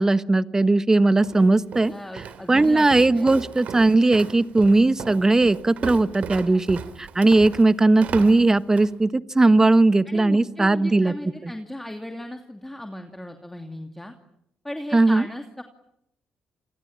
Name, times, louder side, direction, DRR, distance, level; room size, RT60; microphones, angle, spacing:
voice 1, 0.0-1.9 2.5-11.1 11.4-11.5 14.9-15.3, right 2 dB, 20° right, 14 dB, 1.3 m, -18 dB
Walk footsteps, 1.2-9.0, right 7 dB, 65° right, 2.6 m, -37 dB
voice 2, 1.9-2.9 3.1-3.3 6.5-6.8 10.0-14.1 14.6-15.6, left 1 dB, 10° left, 5 dB, 2.7 m, -36 dB
29.0 x 23.5 x 8.8 m, 0.79 s
supercardioid pair, 70°, 3 cm